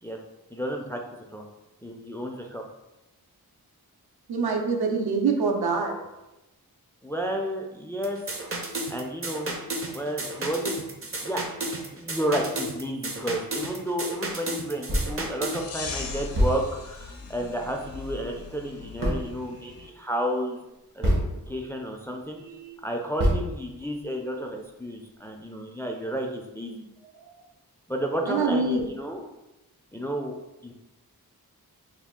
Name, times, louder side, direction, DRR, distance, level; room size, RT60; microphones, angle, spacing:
voice 1, 0.5-1.0 1.3-1.4 1.8-2.6 7.0-8.2 8.9-9.5 9.9-10.8 11.2-11.4 11.9-20.6 20.9-21.1 21.5-22.4 22.8-26.8 27.9-29.3 29.9-30.3 30.6-30.7, equal, 5° left, 2 dB, 0.3 m, -31 dB
voice 2, 4.3-6.0 22.4-22.8 28.2-28.9, right 4 dB, 75° right, 2 dB, 0.6 m, -25 dB
sound 1, 8.0-15.6, right 2 dB, 35° right, 0.6 m, -33 dB
sound 2, 14.9-15.3 15.7-15.8 16.3-17.0 19.0-19.5 21.0-21.7 22.2-22.3 23.2-24.0, equal, 60° right, 1.2 m, -26 dB
sound 3, 15.5-19.9, left 4 dB, 65° left, 0.6 m, -39 dB
3.4 x 2.3 x 3.6 m, 0.96 s
wide cardioid pair, 85°, 38 cm